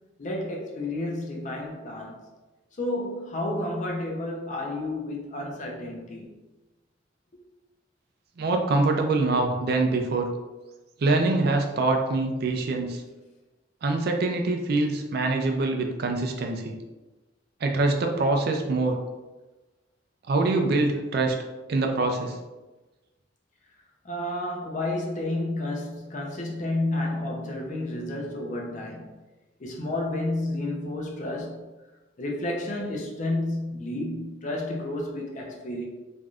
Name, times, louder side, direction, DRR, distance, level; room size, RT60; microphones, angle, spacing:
voice 1, 0.2-2.2 2.8-6.3 24.0-29.1 29.6-31.7 32.2-35.9, left 1 dB, 45° left, 0.5 m, -31 dB
voice 2, 8.4-10.3 11.0-13.0 13.8-16.7 17.6-19.0 20.3-21.4 21.7-22.4, right 3 dB, 60° right, 0.4 m, -24 dB
3.3 x 2.6 x 2.3 m
head